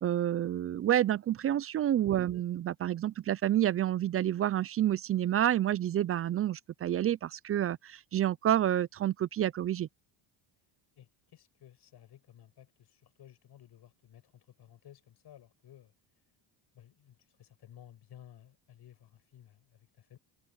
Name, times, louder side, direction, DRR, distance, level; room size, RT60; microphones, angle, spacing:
voice 1, 0.0-9.9, right 11 dB, 30° right, 0.4 m, -29 dB
voice 2, 2.1-2.4 11.0-15.9 16.7-20.2, left 11 dB, 55° left, 6.2 m, -56 dB
cardioid pair, 100°, 48 cm